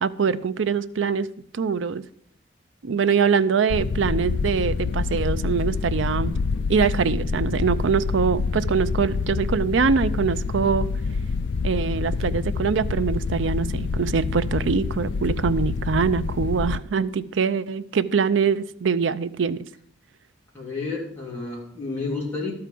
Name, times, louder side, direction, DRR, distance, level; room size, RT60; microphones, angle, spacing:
voice 1, 0.0-1.3 1.5-2.0 2.8-6.4 6.7-10.9 11.6-19.6, right 6 dB, 90° right, 13 dB, 0.5 m, -23 dB
sound 1, 3.7-16.8, left 4 dB, 70° left, 0.4 m, -27 dB
voice 2, 20.5-22.5, left 3 dB, 10° left, -6 dB, 3.3 m, -30 dB
12.5 x 4.8 x 7.5 m, 0.66 s
head